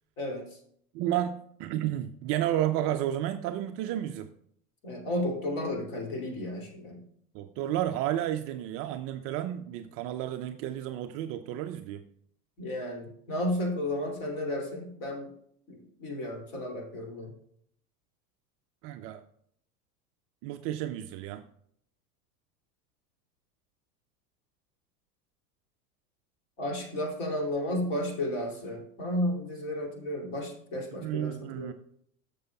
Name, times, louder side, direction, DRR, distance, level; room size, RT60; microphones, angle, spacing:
voice 1, 0.9-4.3 7.3-12.0 18.8-19.2 20.4-21.4 30.9-31.7, right 12 dB, 35° right, 8 dB, 0.4 m, -32 dB
voice 2, 4.8-7.0 12.6-15.3 15.7-17.3 26.6-31.7, left 1 dB, 45° left, 1 dB, 2.8 m, -33 dB
12.5 x 6.8 x 2.3 m, 0.66 s
figure-of-eight pair, 85°, 46 cm